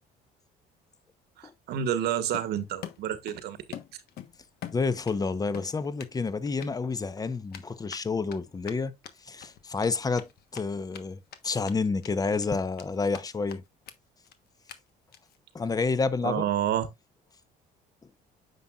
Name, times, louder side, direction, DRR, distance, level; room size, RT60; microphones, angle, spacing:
voice 1, 1.4-3.6 16.2-16.9, right 10 dB, 75° right, 1.5 m, -29 dB
Run, 2.3-3.4 3.7-5.2 5.5-6.1 6.5-6.7 7.5-11.0 11.3-11.4 11.6-12.1 12.4-13.2 13.5-13.6 13.9-14.0 14.2-14.3 14.7-14.8 15.1-15.4, left 10 dB, 65° left, 1.2 m, -43 dB
voice 2, 4.7-8.9 9.3-13.6 15.5-16.4, left 4 dB, 20° left, 0.9 m, -29 dB
9.3 x 5.9 x 2.4 m
cardioid pair, 110°, 17 cm